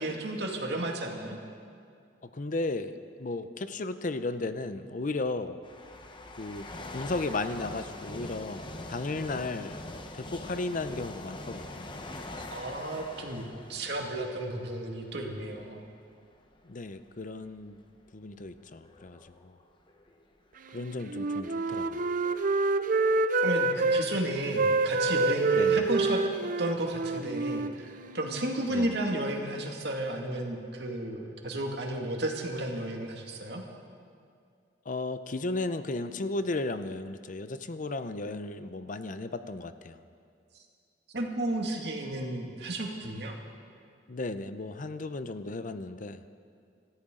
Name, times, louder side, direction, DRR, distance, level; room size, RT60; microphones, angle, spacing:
voice 1, 0.0-1.4 12.5-13.4 13.7-15.8 23.4-26.2 26.6-27.9 28.1-33.6 41.1-43.4, right 1 dB, 65° right, 1 dB, 2.1 m, -33 dB
voice 2, 2.2-5.6 6.4-6.7 6.9-8.6 8.9-9.8 10.1-11.9 16.6-17.8 18.1-19.5 20.7-22.1 25.5-25.8 28.7-28.9 34.9-40.0 44.1-46.2, left 2 dB, 45° left, 11 dB, 0.6 m, -35 dB
sound 1, 5.6-15.6 16.2-16.4 17.2-20.2 20.9-22.7 23.0-23.2, left 2 dB, 25° left, 1.0 m, -44 dB
Wind instrument woodwind instrument, 21.1-24.1 24.5-28.4, right 3 dB, 50° right, 0.6 m, -27 dB
26.0 x 14.0 x 3.8 m, 2.3 s
head